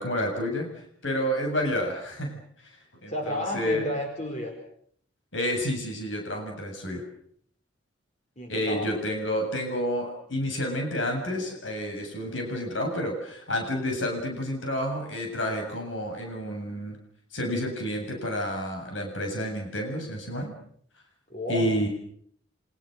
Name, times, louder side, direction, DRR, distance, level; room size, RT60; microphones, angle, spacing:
voice 1, 0.0-3.8 5.3-7.0 8.5-17.0 17.3-20.5 21.5-21.9, equal, 80° left, 2 dB, 7.6 m, -30 dB
voice 2, 3.1-4.5 8.4-9.0 21.3-21.9, left 1 dB, 35° left, 3 dB, 4.5 m, -32 dB
30.0 x 26.0 x 6.7 m, 0.66 s
head